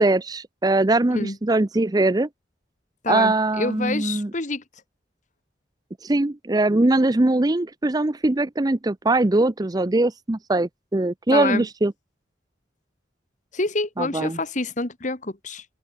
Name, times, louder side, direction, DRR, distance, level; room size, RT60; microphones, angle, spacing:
voice 1, 0.0-2.3 3.1-4.3 6.0-11.9 14.0-14.4, right 2 dB, 20° right, 0.5 m, -21 dB
voice 2, 3.0-4.6 11.3-11.7 13.5-15.7, left 2 dB, 40° left, 1.9 m, -27 dB
head